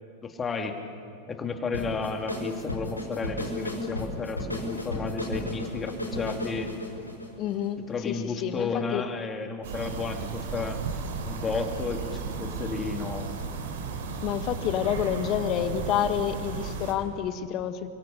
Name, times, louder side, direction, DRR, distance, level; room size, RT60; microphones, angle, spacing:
voice 1, 0.2-0.8 1.3-6.7 7.9-10.8 11.2-13.3, left 4 dB, 20° left, 5 dB, 2.7 m, -32 dB
sound 1, 1.7-8.0, left 1 dB, 85° left, 5.8 m, -34 dB
voice 2, 7.4-9.0 14.2-17.9, left 10 dB, 35° left, 10 dB, 1.8 m, -29 dB
sound 2, 9.6-16.9, right 5 dB, 55° right, 3.4 m, -34 dB
29.5 x 24.0 x 6.9 m, 2.6 s
figure-of-eight pair, 90°, 0 cm